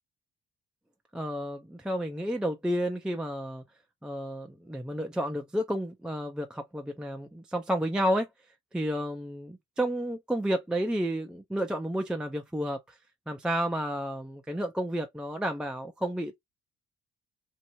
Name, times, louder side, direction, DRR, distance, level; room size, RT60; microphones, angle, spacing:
voice 1, 1.1-3.6 4.0-8.3 8.7-13.0 13.3-16.4, equal, 5° right, 0.4 m, -31 dB
2.8 x 2.4 x 2.8 m
cardioid pair, 90°, 30 cm